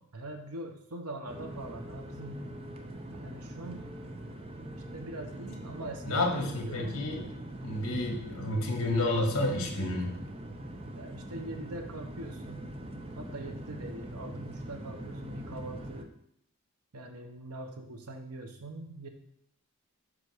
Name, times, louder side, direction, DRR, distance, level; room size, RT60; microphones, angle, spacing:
voice 1, 0.1-2.5 3.2-4.0 4.9-7.0 7.9-8.1 10.9-12.7 13.2-16.1 16.9-19.1, right 2 dB, 85° right, 5 dB, 1.0 m, -43 dB
sound 1, 1.3-16.0, right 1 dB, 25° right, 0.5 m, -42 dB
voice 2, 6.0-7.3 7.6-10.1, left 2 dB, 65° left, 2 dB, 1.5 m, -30 dB
5.1 x 4.8 x 6.2 m, 0.72 s
head